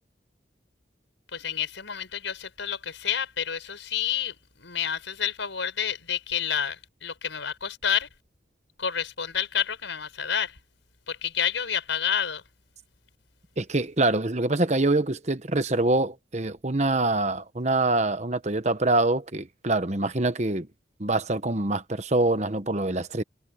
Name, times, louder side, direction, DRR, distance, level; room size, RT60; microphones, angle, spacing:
voice 1, 1.3-8.1 8.8-10.6 11.1-12.4, left 8 dB, 85° left, 5.2 m, -29 dB
voice 2, 13.6-20.7 21.0-23.2, right 2 dB, 35° right, 1.1 m, -25 dB
head